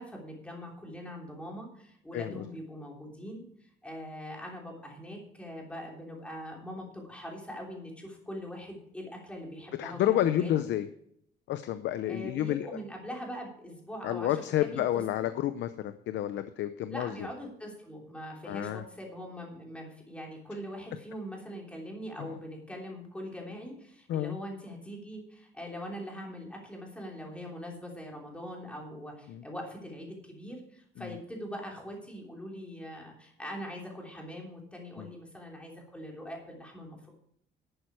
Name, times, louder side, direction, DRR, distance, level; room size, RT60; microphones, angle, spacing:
voice 1, 0.0-3.4 3.8-10.6 12.0-14.8 15.2-15.3 16.9-37.1, equal, 5° left, -1 dB, 3.1 m, -42 dB
voice 2, 2.1-2.4 9.8-10.9 11.5-12.7 14.0-17.1 18.5-18.8 22.2-22.4 24.1-24.3 29.3-29.4 31.0-31.1 35.0-35.1, left 12 dB, 85° left, 11 dB, 0.7 m, -30 dB
11.5 x 8.9 x 4.7 m, 0.70 s
cardioid pair, 170°, 18 cm